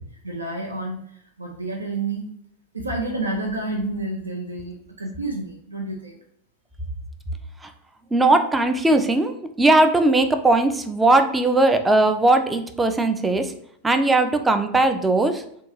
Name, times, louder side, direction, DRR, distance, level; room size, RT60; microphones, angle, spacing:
voice 1, 0.2-2.3 2.7-6.2, right 2 dB, 80° right, 1 dB, 0.4 m, -29 dB
voice 2, 8.1-13.5 13.8-15.4, right 2 dB, 10° right, 8 dB, 0.4 m, -19 dB
3.4 x 2.3 x 3.0 m, 0.71 s
figure-of-eight pair, 90°, 0 cm